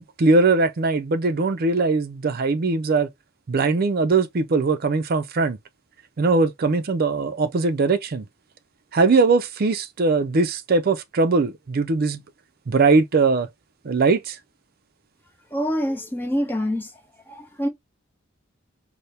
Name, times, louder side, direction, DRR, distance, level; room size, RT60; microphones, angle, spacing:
voice 1, 0.0-3.1 3.5-5.6 6.2-8.2 8.9-12.2 12.7-13.5 13.8-14.4, right 3 dB, 50° right, 0.5 m, -20 dB
voice 2, 15.5-16.9 17.3-17.7, equal, 10° left, 0.7 m, -25 dB
4.2 x 2.1 x 3.2 m
head